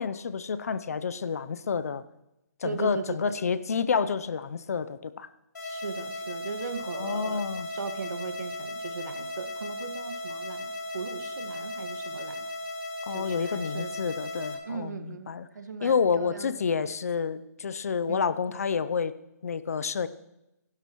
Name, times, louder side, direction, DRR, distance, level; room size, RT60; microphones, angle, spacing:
voice 1, 0.0-2.0 2.6-5.3 7.0-7.7 13.0-15.5 15.8-19.1 19.4-20.1, left 6 dB, 60° left, 15 dB, 0.7 m, -29 dB
voice 2, 2.6-3.3 5.6-12.5 13.1-13.9 14.6-16.7 18.1-18.3, right 5 dB, 80° right, 7 dB, 1.7 m, -38 dB
sound 1, 5.5-14.5, left 1 dB, 85° left, 3.9 m, -36 dB
25.5 x 12.5 x 3.1 m, 0.91 s
hypercardioid pair, 175°, 9 cm